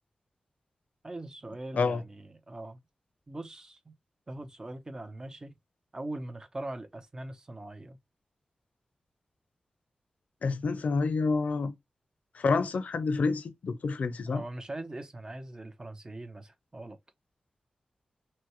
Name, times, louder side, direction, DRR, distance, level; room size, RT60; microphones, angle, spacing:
voice 1, 1.0-2.8 3.3-3.9 4.3-5.5 5.9-8.0 14.3-17.0, right 2 dB, 30° right, 0.9 m, -41 dB
voice 2, 10.4-11.7 12.3-14.4, left 4 dB, 75° left, 0.7 m, -28 dB
6.0 x 2.3 x 3.1 m
wide cardioid pair, 95°, 2 cm